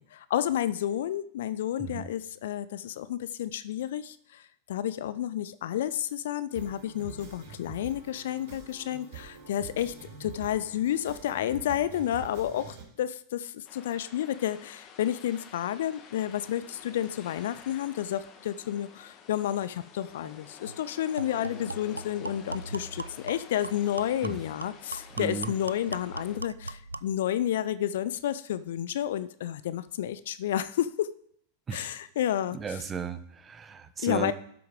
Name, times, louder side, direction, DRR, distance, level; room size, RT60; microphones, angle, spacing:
voice 1, 0.0-4.4 4.7-9.9 10.2-31.1 31.7-32.8 34.0-34.3, left 11 dB, 60° left, 15 dB, 0.6 m, -31 dB
sound 1, 6.5-12.8, right 5 dB, 50° right, 4.5 m, -46 dB
sound 2, 13.6-26.4, left 7 dB, 35° left, 1.9 m, -50 dB
sound 3, 20.2-20.3 20.7-20.8 21.2-27.2, right 2 dB, 80° right, 0.3 m, -40 dB
voice 2, 25.2-25.5 31.7-31.9 32.5-34.3, right 6 dB, 20° right, 11 dB, 1.1 m, -35 dB
12.0 x 7.8 x 5.2 m, 0.67 s
figure-of-eight pair, 90°, 0 cm